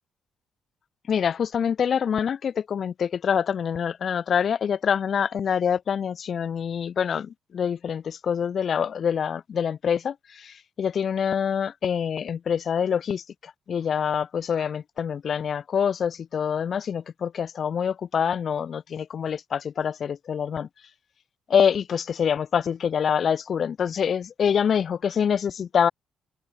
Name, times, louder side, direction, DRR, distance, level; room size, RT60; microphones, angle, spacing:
voice 1, 1.1-20.7 21.5-25.9, left 7 dB, 45° left, 0.5 m, -25 dB
open air
figure-of-eight pair, 45°, 0 cm